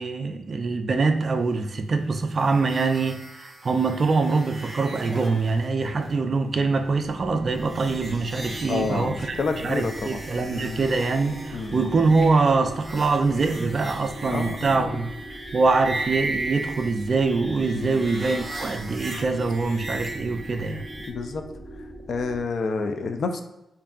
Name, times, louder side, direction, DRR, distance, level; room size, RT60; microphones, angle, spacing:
voice 1, 0.0-15.1 15.5-20.8, right 4 dB, 40° right, 7 dB, 0.3 m, -24 dB
sound 1, 2.3-21.1, right 2 dB, 15° right, 0.8 m, -37 dB
sound 2, 6.7-22.4, right 1 dB, 40° left, 1.0 m, -42 dB
voice 2, 8.7-10.8 11.5-11.8 14.3-15.0 17.7-18.0 21.0-21.4 22.1-23.4, left 4 dB, 55° left, 6 dB, 0.3 m, -29 dB
5.2 x 2.6 x 2.4 m, 0.92 s
wide cardioid pair, 140°, 0 cm